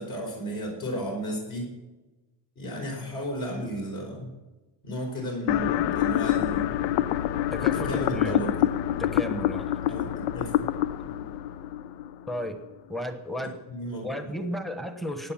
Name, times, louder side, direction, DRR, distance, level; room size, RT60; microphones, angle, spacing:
voice 1, 0.0-1.7 2.5-4.3 4.8-6.7 7.7-8.6 9.9-10.7 11.1-11.2 13.4-14.1, equal, 55° left, -2 dB, 4.8 m, -34 dB
sound 1, 5.5-12.5, left 12 dB, 75° left, 0.7 m, -26 dB
voice 2, 7.5-8.4 9.0-9.7 12.3-12.6 12.9-13.6 14.0-15.3, equal, ahead, 7 dB, 1.0 m, -33 dB
16.0 x 9.5 x 5.9 m, 1.1 s
cardioid pair, 175°, 44 cm